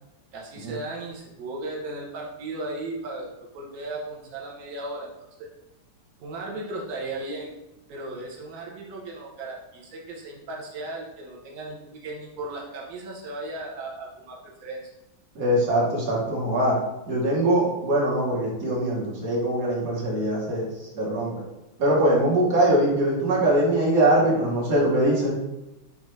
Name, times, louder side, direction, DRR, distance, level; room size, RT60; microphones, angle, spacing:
voice 1, 0.3-3.3 3.5-5.1 5.4-5.5 6.2-7.5 7.9-14.8, right 2 dB, 75° right, -2 dB, 0.7 m, -36 dB
voice 2, 15.3-16.8 17.1-20.7 20.9-21.3 21.8-25.3, right 1 dB, 50° right, -4 dB, 1.3 m, -22 dB
5.3 x 2.4 x 3.1 m, 0.92 s
omnidirectional pair, 2.2 m